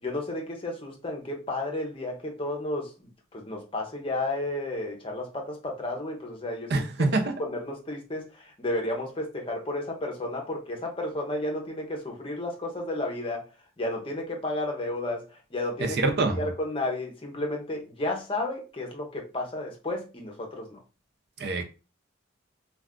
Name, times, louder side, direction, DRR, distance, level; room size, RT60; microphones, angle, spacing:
voice 1, 0.0-8.3 8.6-13.5 13.8-20.8, left 2 dB, 25° left, 0.6 m, -32 dB
voice 2, 6.7-7.3 15.8-16.5 21.4-21.6, right 3 dB, 50° right, 0.5 m, -25 dB
2.4 x 2.3 x 3.5 m
head